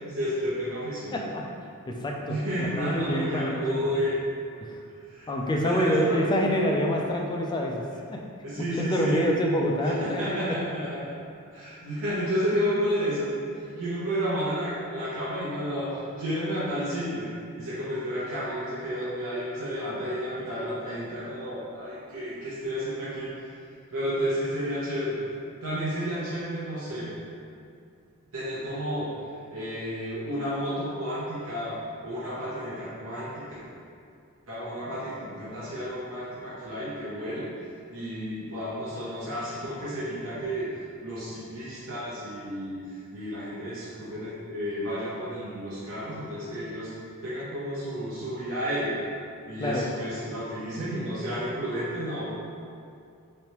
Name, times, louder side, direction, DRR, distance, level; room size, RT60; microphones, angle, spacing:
voice 1, 0.0-1.2 2.3-4.2 5.1-5.3 5.6-6.5 8.4-9.3 9.8-11.0 11.5-17.3 17.6-23.3 23.9-25.2 25.6-27.1 28.3-29.1 29.5-33.6 34.5-37.5 37.9-40.7 41.0-46.9 47.2-49.0 49.5-52.3, equal, 65° right, -10 dB, 0.8 m, -31 dB
voice 2, 1.1-1.5 1.9-3.9 4.6-4.8 5.3-8.2 8.7-10.6 49.6-49.9, equal, 20° left, 0 dB, 0.3 m, -27 dB
3.3 x 3.1 x 2.9 m, 2.4 s
head